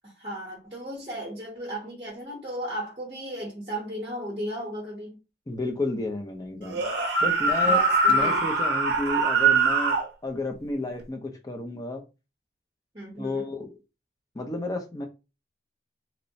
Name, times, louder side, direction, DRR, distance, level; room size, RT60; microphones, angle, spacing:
voice 1, 0.0-5.2 7.7-8.5 12.9-13.5, right 1 dB, 30° right, 0.7 m, -35 dB
voice 2, 5.5-6.8 7.2-7.8 8.1-12.0 13.2-13.8 14.3-15.1, left 2 dB, 20° left, 0.4 m, -32 dB
sound 1, 6.6-10.1, right 3 dB, 70° right, 0.5 m, -22 dB
2.9 x 2.0 x 2.6 m
head